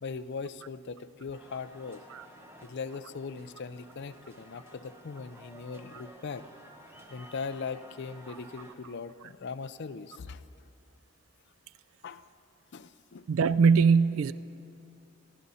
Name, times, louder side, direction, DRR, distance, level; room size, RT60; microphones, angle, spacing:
voice 1, 0.0-2.0 2.6-6.5 7.1-10.4 12.0-12.3 12.7-13.2, left 5 dB, 55° left, 11 dB, 0.5 m, -40 dB
sound 1, 1.3-8.7, equal, 10° right, 1.3 m, -53 dB
voice 2, 13.3-14.3, right 5 dB, 70° right, 14 dB, 0.3 m, -22 dB
24.0 x 14.0 x 4.2 m, 2.7 s
head